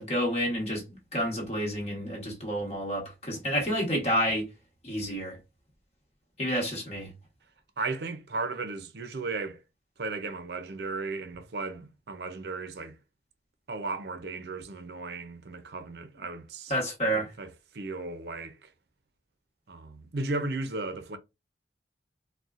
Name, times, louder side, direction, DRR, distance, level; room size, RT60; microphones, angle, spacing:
voice 1, 0.0-4.5 4.8-5.4 6.4-7.1 16.7-17.3, equal, 35° left, 1.2 m, -29 dB
voice 2, 7.8-9.6 10.0-13.0 13.7-16.7 17.1-17.5 17.7-18.7 19.7-21.2, right 3 dB, 65° right, 0.5 m, -35 dB
4.1 x 2.2 x 2.4 m
head